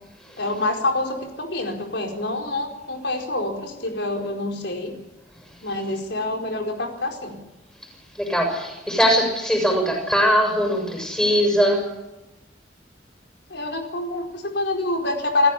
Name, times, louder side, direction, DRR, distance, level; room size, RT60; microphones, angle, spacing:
voice 1, 0.4-4.9 5.6-7.4 13.5-15.5, left 2 dB, 75° left, 3 dB, 4.7 m, -26 dB
voice 2, 8.2-11.9, equal, 5° left, 2 dB, 7.0 m, -20 dB
28.0 x 15.5 x 8.4 m, 1.0 s
head